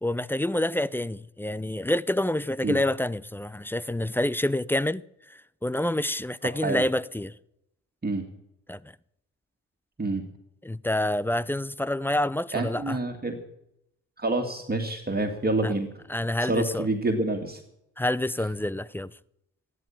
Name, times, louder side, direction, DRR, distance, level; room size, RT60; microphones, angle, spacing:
voice 1, 0.0-5.0 5.3-7.3 8.7-8.8 10.6-13.0 15.6-15.7 16.1-16.9 18.0-19.1, left 1 dB, 5° left, 0.5 m, -27 dB
voice 2, 6.4-6.8 8.0-8.2 10.0-10.3 12.5-13.4 14.2-15.9 16.5-17.6, right 2 dB, 25° right, 2.2 m, -27 dB
13.5 x 11.0 x 8.8 m
hypercardioid pair, 50°, 40 cm